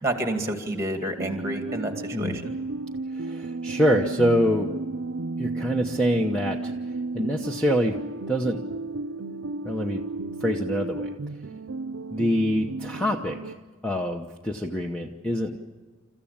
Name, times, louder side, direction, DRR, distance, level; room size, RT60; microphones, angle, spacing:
voice 1, 0.0-2.5, right 1 dB, 15° right, 4 dB, 2.2 m, -29 dB
sound 1, 1.2-13.6, right 2 dB, 70° right, 0.7 m, -33 dB
voice 2, 3.1-4.7 5.4-6.7 7.1-8.0 8.3-8.6 9.6-10.0 10.4-11.1 12.1-13.5 13.8-15.6, equal, 5° left, 2 dB, 0.9 m, -25 dB
29.0 x 14.5 x 8.7 m, 1.4 s
head